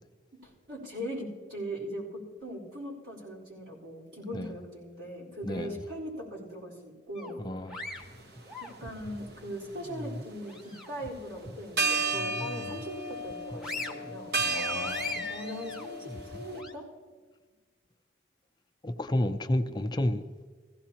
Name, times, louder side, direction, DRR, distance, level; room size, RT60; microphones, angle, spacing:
voice 1, 0.3-7.4 8.6-14.3 15.1-16.9, equal, 80° right, 4.3 m, -40 dB
voice 2, 5.4-5.8 7.4-7.9 14.4-15.3 18.8-20.2, left 1 dB, 20° left, 0.5 m, -31 dB
sound 1, 7.2-9.2 9.6-11.1 11.5-11.6 12.1-12.9 13.3-16.7, left 2 dB, 5° right, 1.0 m, -40 dB
sound 2, 8.0-8.2 8.9-9.9 11.3-11.4 11.8-16.6, right 2 dB, 55° right, 1.0 m, -33 dB
16.0 x 16.0 x 2.9 m
head